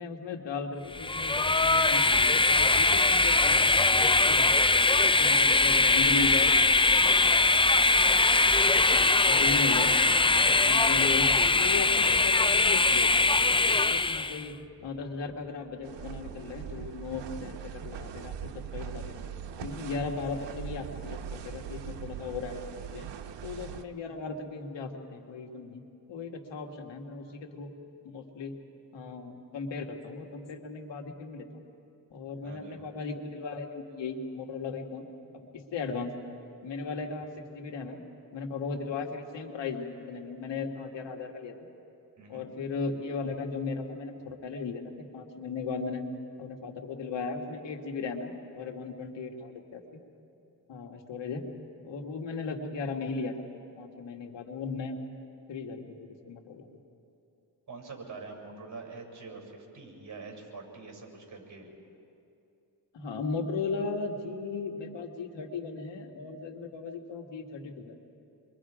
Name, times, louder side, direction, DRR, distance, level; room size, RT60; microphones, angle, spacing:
voice 1, 0.0-4.5 5.0-8.4 8.9-9.9 10.4-14.5 14.8-19.2 19.6-23.1 23.4-25.8 26.1-27.7 28.0-28.5 28.9-31.6 32.1-36.1 36.6-38.0 38.3-41.7 42.3-44.8 45.1-46.1 46.4-50.0 50.7-51.4 51.8-53.3 53.8-55.0 55.5-56.7 62.9-68.0, left 4 dB, 85° left, 3 dB, 2.0 m, -37 dB
sound 1, 0.8-17.8, left 4 dB, 45° left, 6.7 m, -46 dB
Train, 0.9-14.4, left 3 dB, 15° left, 0.4 m, -22 dB
sound 2, 15.8-23.8, right 8 dB, 80° right, 1.0 m, -41 dB
voice 2, 32.4-32.8 42.2-42.4 57.7-61.7, right 4 dB, 45° right, 2 dB, 6.7 m, -45 dB
28.0 x 23.5 x 5.0 m, 2.7 s
cardioid pair, 75°, 42 cm